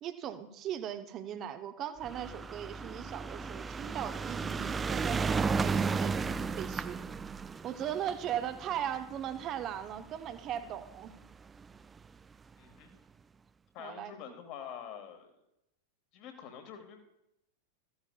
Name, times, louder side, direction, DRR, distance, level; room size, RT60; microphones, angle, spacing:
voice 1, 0.0-7.0 7.6-11.2 13.8-14.4, right 10 dB, 35° right, 9 dB, 0.9 m, -38 dB
sound 1, 2.0-10.5 11.3-11.4 11.6-11.7 12.0-12.1, right 4 dB, 15° right, 0.3 m, -34 dB
voice 2, 12.6-12.9 13.7-15.3 16.1-17.0, left 8 dB, 40° left, 5 dB, 1.9 m, -46 dB
15.0 x 14.5 x 2.4 m, 0.86 s
figure-of-eight pair, 90°, 0 cm